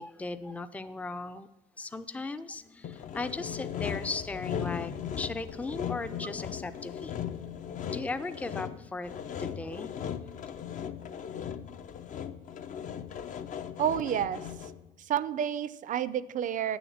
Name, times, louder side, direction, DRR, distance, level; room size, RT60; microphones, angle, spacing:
voice 1, 0.0-1.5 1.8-4.9 5.2-7.1 7.9-9.9, left 3 dB, 10° left, 11 dB, 0.5 m, -37 dB
Sawing, 2.8-14.9, left 8 dB, 50° left, 0.7 m, -38 dB
voice 2, 13.8-14.4 15.1-16.8, right 9 dB, 50° right, 16 dB, 0.5 m, -29 dB
9.0 x 7.1 x 7.2 m, 0.97 s
cardioid pair, 110°, 17 cm